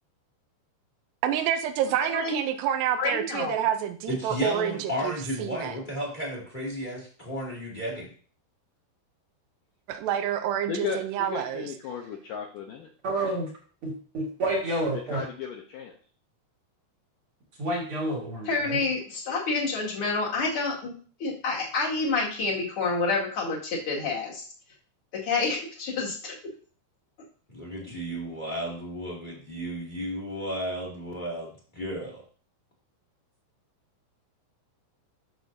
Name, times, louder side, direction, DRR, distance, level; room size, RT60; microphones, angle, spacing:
voice 1, 1.2-5.8 9.9-11.7, right 10 dB, 80° right, 8 dB, 2.7 m, -28 dB
voice 2, 2.0-2.4 3.0-3.6 18.4-20.9 21.2-24.4 25.1-26.3, left 3 dB, 40° left, -3 dB, 2.3 m, -28 dB
voice 3, 4.1-8.1 27.5-32.2, equal, 15° left, -3 dB, 1.5 m, -33 dB
voice 4, 10.7-12.9 14.9-15.9, left 7 dB, 75° left, 1 dB, 2.0 m, -35 dB
voice 5, 13.0-13.5 13.8-15.2 17.6-18.8, right 1 dB, 45° right, -2 dB, 1.9 m, -29 dB
12.0 x 6.8 x 2.7 m, 0.43 s
omnidirectional pair, 4.9 m